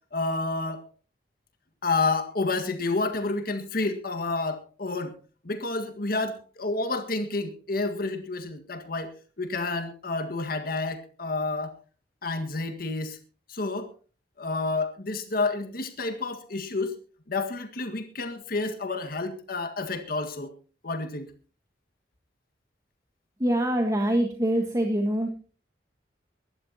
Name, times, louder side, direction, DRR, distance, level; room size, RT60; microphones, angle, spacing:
voice 1, 0.1-0.8 1.8-5.1 5.4-9.1 9.4-11.7 12.2-13.2 13.5-13.9 14.4-16.9 17.3-20.5 20.8-21.3, left 3 dB, 55° left, 6 dB, 1.8 m, -29 dB
voice 2, 23.4-25.3, right 1 dB, 20° right, 4 dB, 1.5 m, -24 dB
23.5 x 12.0 x 2.9 m, 0.36 s
head